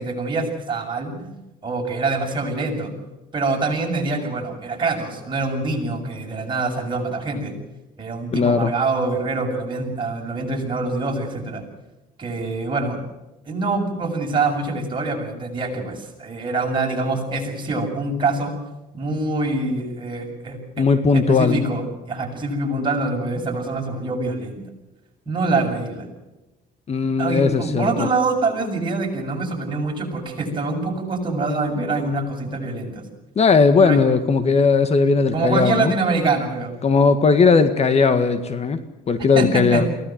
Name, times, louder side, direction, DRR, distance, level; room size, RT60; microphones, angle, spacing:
voice 1, 0.0-1.3 1.6-2.9 3.3-7.6 8.0-11.7 12.2-13.0 13.5-18.6 18.9-20.9 21.1-24.6 25.3-26.1 27.2-33.0 33.8-34.0 35.3-36.7 39.3-39.9, right 3 dB, 30° right, 0 dB, 7.3 m, -25 dB
voice 2, 8.3-8.7 20.8-21.6 26.9-28.1 33.3-35.9 36.8-38.8 39.1-39.9, left 5 dB, 40° left, 10 dB, 1.7 m, -17 dB
23.0 x 17.5 x 9.2 m, 1.0 s
cardioid pair, 110°, 17 cm